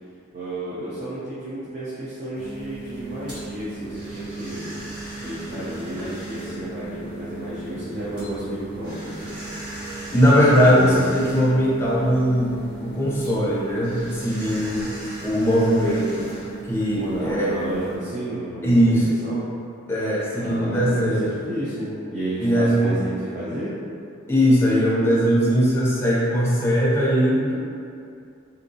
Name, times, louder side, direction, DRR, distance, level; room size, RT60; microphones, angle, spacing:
voice 1, 0.3-4.6 5.2-9.4 10.5-11.0 17.0-19.5 20.3-23.7, right 1 dB, 40° right, -10 dB, 0.6 m, -32 dB
sound 1, 2.3-18.0, right 2 dB, 60° right, 1.4 m, -36 dB
voice 2, 10.1-12.5 12.8-14.9 15.2-16.2 16.7-17.5 18.6-19.1 19.9-21.4 22.4-22.9 24.3-27.6, equal, 10° left, -7 dB, 0.5 m, -20 dB
3.5 x 2.8 x 2.6 m, 2.5 s
head